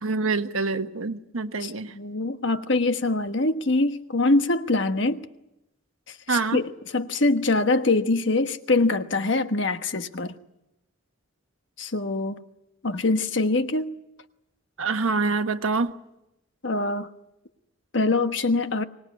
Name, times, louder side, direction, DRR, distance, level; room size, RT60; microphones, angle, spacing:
voice 1, 0.0-1.9 6.3-6.6 14.8-16.0, right 4 dB, 80° right, 1.3 m, -26 dB
voice 2, 1.6-5.2 6.1-10.3 11.8-12.4 12.8-13.9 16.6-17.1 17.9-18.8, left 2 dB, 60° left, 1.3 m, -24 dB
24.5 x 19.5 x 9.4 m
head